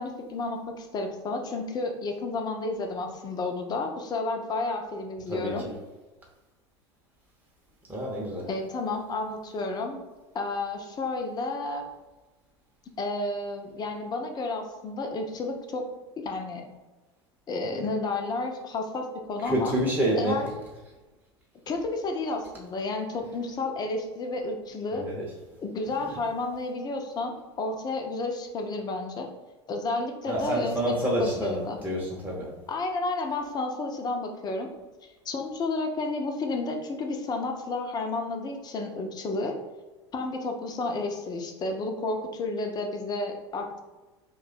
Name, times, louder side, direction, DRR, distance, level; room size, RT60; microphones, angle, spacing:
voice 1, 0.0-5.7 8.5-10.0 10.3-11.8 13.0-15.9 16.2-16.7 17.5-19.7 20.2-20.5 21.7-25.1 25.6-29.3 29.7-31.8 32.7-34.7 35.0-39.6 40.1-43.8, left 3 dB, 30° left, 4 dB, 0.6 m, -31 dB
voice 2, 5.3-5.7 7.9-8.5 19.4-20.4 24.9-25.3 26.0-26.1 30.3-32.5, right 1 dB, 10° right, -3 dB, 0.8 m, -28 dB
2.7 x 2.3 x 4.0 m, 1.2 s
figure-of-eight pair, 75°, 15 cm